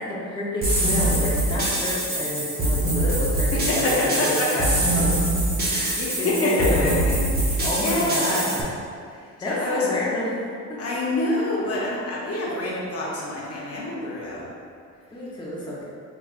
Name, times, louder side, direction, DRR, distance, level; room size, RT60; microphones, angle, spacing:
voice 1, 0.0-5.1 5.7-7.0 7.6-8.7 9.4-10.4 10.7-10.8 15.1-15.9, left 1 dB, 15° left, -7 dB, 0.8 m, -30 dB
sound 1, 0.6-8.6, right 1 dB, 30° right, 0.8 m, -24 dB
voice 2, 3.5-4.7 6.0-7.2 7.4-8.5 9.1-9.9 10.8-14.5, left 2 dB, 50° left, -5 dB, 0.7 m, -26 dB
4.7 x 3.2 x 2.4 m, 2.3 s
cardioid pair, 145°, 31 cm